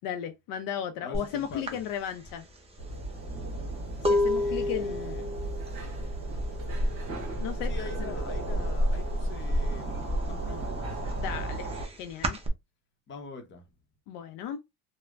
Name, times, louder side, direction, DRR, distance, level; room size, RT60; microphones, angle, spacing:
voice 1, 0.0-2.5 4.1-5.3 7.4-7.7 8.0-8.2 11.2-11.7 12.0-12.4 14.1-14.6, left 9 dB, 65° left, 0.5 m, -35 dB
voice 2, 1.0-1.8 4.4-5.3 7.6-11.0 13.1-13.7, left 4 dB, 30° left, 0.7 m, -45 dB
sound 1, 1.1-1.3 1.7-7.3 7.6-8.1 8.4-9.5 9.9-12.5, left 2 dB, 15° right, 0.5 m, -31 dB
sound 2, 2.8-11.9, right 1 dB, 35° right, 1.4 m, -32 dB
3.2 x 2.1 x 2.3 m
cardioid pair, 135°, 36 cm